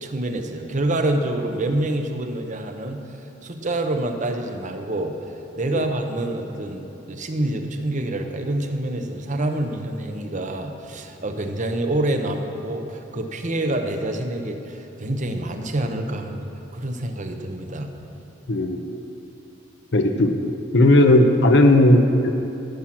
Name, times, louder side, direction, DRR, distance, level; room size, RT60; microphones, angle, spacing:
voice 1, 0.0-3.0 3.4-5.1 5.6-17.9, right 1 dB, 40° right, 5 dB, 0.9 m, -27 dB
voice 2, 18.5-18.9 19.9-22.3, left 1 dB, 65° left, 5 dB, 0.7 m, -16 dB
14.0 x 7.5 x 6.1 m, 3.0 s
head